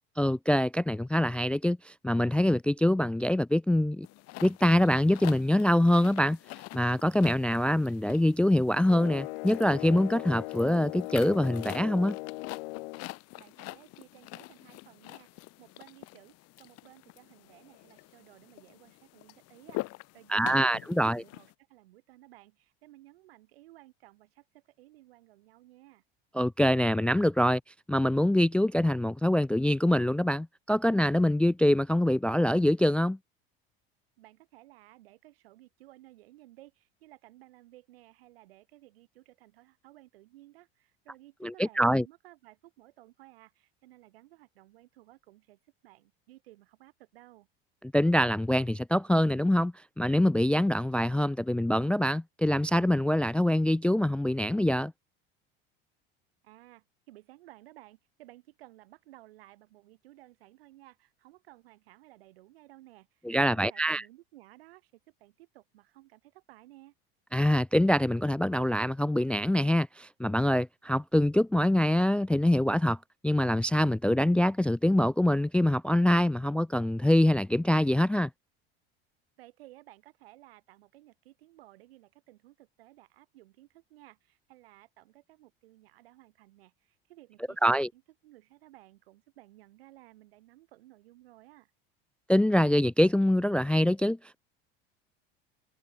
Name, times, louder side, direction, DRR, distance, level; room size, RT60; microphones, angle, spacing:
voice 1, 0.2-4.1 4.4-6.4 6.7-12.2 20.3-21.2 26.3-27.6 27.9-33.2 41.4-42.0 47.9-54.9 63.2-64.0 67.3-73.0 73.2-78.3 87.6-87.9 92.3-94.4, left 1 dB, 5° left, 0.4 m, -25 dB
sound 1, 4.0-21.5, left 21 dB, 55° left, 1.1 m, -46 dB
sound 2, 8.9-13.1, left 24 dB, 75° left, 0.9 m, -38 dB
voice 2, 13.4-26.0 34.2-47.5 56.4-66.9 79.4-91.7, right 17 dB, 80° right, 5.1 m, -56 dB
hypercardioid pair, 80°, 29 cm